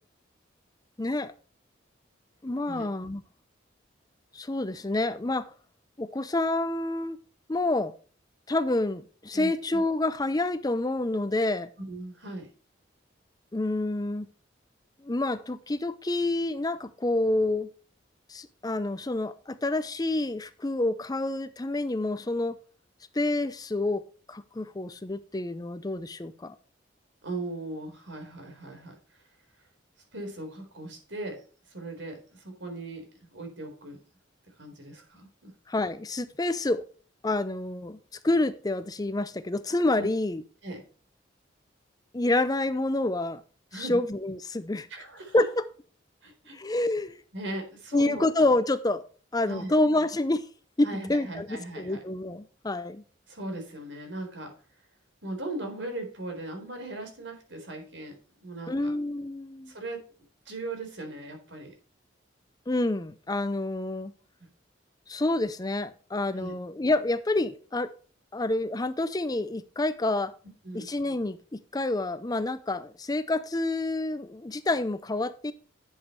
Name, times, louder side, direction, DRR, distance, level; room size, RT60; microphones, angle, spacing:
voice 1, 1.0-1.3 2.4-3.2 4.3-5.5 6.0-7.2 7.5-7.9 8.5-11.7 13.5-14.3 15.0-17.7 18.3-22.6 23.1-24.0 24.3-26.6 35.7-36.8 37.2-38.0 38.2-40.4 42.1-43.4 43.7-44.9 45.3-45.4 46.5-47.2 47.9-49.0 49.3-50.5 50.8-53.0 58.7-59.7 62.7-64.1 65.1-67.9 68.3-70.3 70.7-75.5, left 2 dB, 20° left, 0.5 m, -28 dB
voice 2, 11.8-12.5 27.2-28.9 30.1-31.4 31.7-34.0 34.6-35.5 40.0-40.1 40.6-40.8 43.7-44.0 44.9-45.4 46.2-46.6 47.3-48.2 49.5-49.7 50.8-52.0 53.3-54.5 55.2-58.9 59.7-60.0 60.5-61.7 66.4-66.5 70.6-70.9, right 2 dB, 70° right, 4.1 m, -38 dB
11.0 x 7.4 x 3.1 m
head